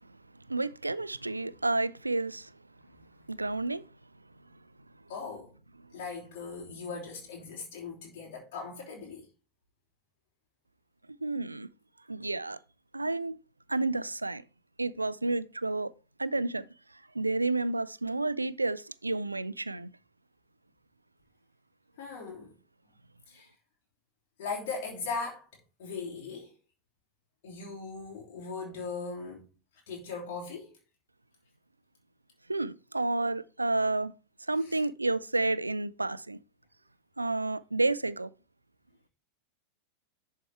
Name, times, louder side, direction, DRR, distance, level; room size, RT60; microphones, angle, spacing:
voice 1, 0.5-2.5 3.3-3.8 11.2-11.7 12.1-12.6 12.9-13.4 13.7-14.4 14.8-15.9 16.2-16.6 17.1-19.9 32.5-34.1 34.5-36.4 37.2-38.3, right 2 dB, 80° right, 0.4 m, -30 dB
voice 2, 5.1-5.5 5.9-9.2 22.0-22.5 23.3-23.5 24.4-25.5 25.8-26.5 27.4-29.5 29.9-30.7 34.6-34.8, left 4 dB, 50° left, 3.2 m, -39 dB
11.0 x 4.6 x 4.5 m
figure-of-eight pair, 90°, 0 cm